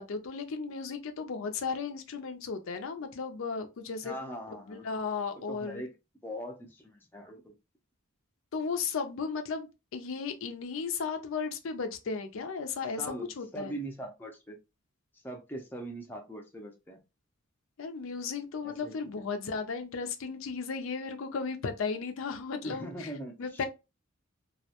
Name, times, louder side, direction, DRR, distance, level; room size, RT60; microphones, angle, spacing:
voice 1, 0.0-4.1 4.7-5.8 8.5-13.7 17.8-22.9 23.4-23.7, left 5 dB, 70° left, 0.5 m, -35 dB
voice 2, 4.0-4.8 5.3-6.0 6.2-7.5 13.0-14.6 15.2-17.0 18.6-19.2 22.6-23.7, equal, 10° left, 0.5 m, -41 dB
2.3 x 2.1 x 2.8 m
head